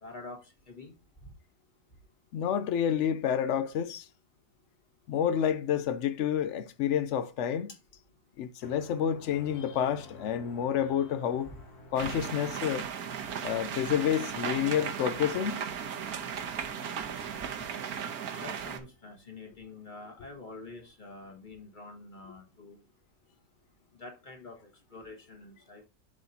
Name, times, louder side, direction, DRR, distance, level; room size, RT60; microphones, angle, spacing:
voice 1, 0.0-0.9 11.5-11.6 12.0-12.2 18.3-22.8 24.0-25.9, left 2 dB, 30° left, 1.6 m, -46 dB
voice 2, 2.3-4.1 5.1-7.7 8.4-11.5 11.9-12.9 13.4-15.6, left 9 dB, 75° left, 0.6 m, -29 dB
sound 1, 8.6-15.3, left 2 dB, 60° left, 2.0 m, -53 dB
sound 2, 12.0-18.8, right 7 dB, 65° right, 1.3 m, -36 dB
12.0 x 4.1 x 2.7 m
omnidirectional pair, 1.9 m